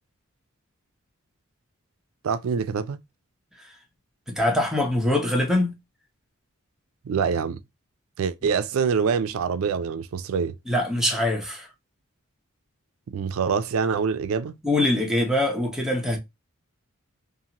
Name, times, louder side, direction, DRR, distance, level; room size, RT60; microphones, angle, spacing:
voice 1, 2.2-3.0 7.0-7.6 8.2-10.5 13.1-14.6, right 6 dB, 70° right, 0.4 m, -25 dB
voice 2, 4.3-5.7 10.7-11.7 14.6-16.2, left 1 dB, 5° right, 0.7 m, -23 dB
2.6 x 2.5 x 2.8 m
head